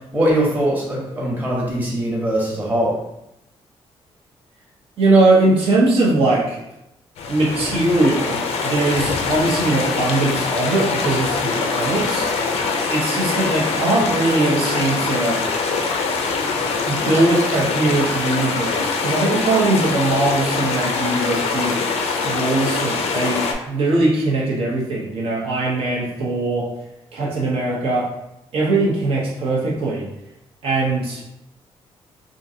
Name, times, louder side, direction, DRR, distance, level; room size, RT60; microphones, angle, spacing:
voice 1, 0.1-3.0, right 1 dB, 15° right, -4 dB, 1.0 m, -21 dB
voice 2, 5.0-6.6 7.3-12.3 12.9-15.4 16.8-21.8 22.2-26.7 27.1-28.1 28.5-30.1 30.6-31.2, right 2 dB, 65° right, -4 dB, 0.8 m, -20 dB
sound 1, 7.2-23.5, left 4 dB, 90° left, 0.5 m, -23 dB
3.6 x 2.5 x 2.7 m, 0.85 s
cardioid pair, 145°, 10 cm